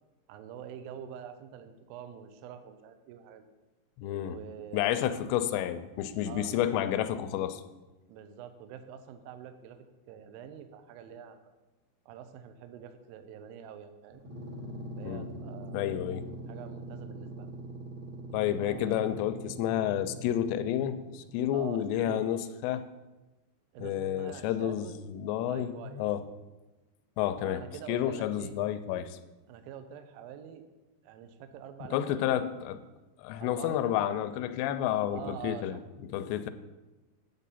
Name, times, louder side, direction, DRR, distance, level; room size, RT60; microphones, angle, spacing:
voice 1, 0.3-3.4 4.2-5.3 6.3-6.6 8.1-11.5 12.1-14.2 15.0-15.9 16.5-17.6 18.6-19.2 21.5-22.3 23.7-25.0 25.4-26.0 27.4-28.6 29.5-30.6 31.0-32.4 33.4-34.0 35.1-35.8, right 9 dB, 85° right, 9 dB, 2.1 m, -46 dB
voice 2, 4.0-4.4 4.7-7.6 15.0-15.3 15.7-16.3 18.3-22.9 23.8-26.2 27.2-29.2 31.9-32.8 33.2-35.8 36.1-36.5, left 11 dB, 85° left, 12 dB, 2.8 m, -30 dB
sound 1, 14.1-21.5, right 2 dB, 50° right, 1.2 m, -43 dB
9.1 x 8.3 x 4.1 m, 1.1 s
omnidirectional pair, 5.0 m